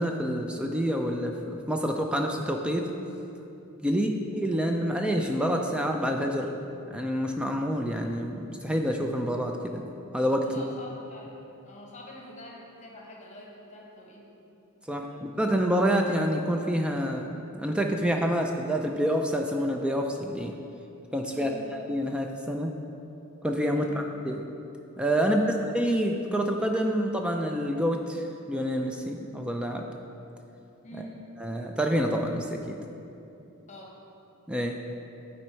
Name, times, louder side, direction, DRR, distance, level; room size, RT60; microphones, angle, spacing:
voice 1, 0.0-2.9 3.8-6.5 6.9-9.8 10.1-10.6 14.9-20.5 21.1-22.7 23.4-24.4 25.0-29.9 31.4-32.8 34.5-34.8, equal, 5° right, 2 dB, 0.3 m, -27 dB
voice 2, 10.4-11.4 11.6-14.6 15.1-15.2 21.3-21.7 23.7-24.1 25.2-25.5 30.8-31.2 33.7-34.0, left 1 dB, 30° left, -2 dB, 1.0 m, -46 dB
9.3 x 4.2 x 4.5 m, 2.8 s
head